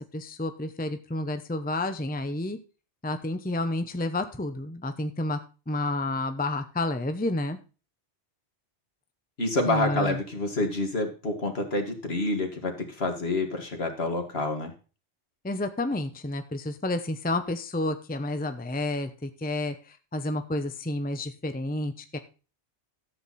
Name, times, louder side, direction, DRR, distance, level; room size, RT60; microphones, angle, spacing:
voice 1, 0.0-2.6 3.0-5.4 5.7-7.6 9.7-10.2 15.4-22.2, left 2 dB, 10° left, 8 dB, 0.8 m, -30 dB
voice 2, 9.4-14.7, left 2 dB, 60° left, 4 dB, 2.5 m, -28 dB
13.0 x 8.1 x 4.2 m, 0.34 s
omnidirectional pair, 1.2 m